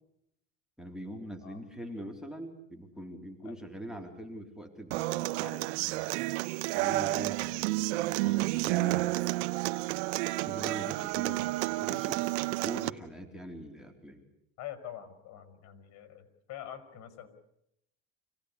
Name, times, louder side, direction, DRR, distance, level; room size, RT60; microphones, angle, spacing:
voice 1, 0.8-6.1 6.7-9.3 10.2-14.2, right 1 dB, ahead, 3 dB, 3.5 m, -43 dB
Human voice / Acoustic guitar, 4.9-12.9, right 20 dB, 85° right, 1.1 m, -30 dB
voice 2, 14.6-17.3, left 11 dB, 55° left, 11 dB, 5.2 m, -45 dB
26.5 x 17.5 x 9.7 m, 0.78 s
cardioid pair, 125°, 33 cm